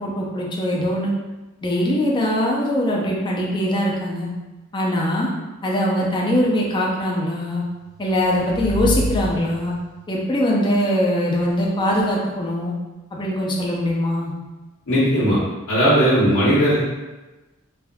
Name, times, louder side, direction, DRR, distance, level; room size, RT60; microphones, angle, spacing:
voice 1, 0.0-1.1 1.6-4.3 4.7-5.3 5.6-7.6 8.0-9.7 10.1-12.7 13.1-14.3, equal, 20° left, -3 dB, 0.4 m, -22 dB
sound 1, 7.7-10.1, equal, 40° right, 0.9 m, -28 dB
voice 2, 14.9-15.4 15.7-16.8, equal, 85° left, -10 dB, 1.0 m, -17 dB
3.4 x 2.5 x 2.2 m, 1.1 s
head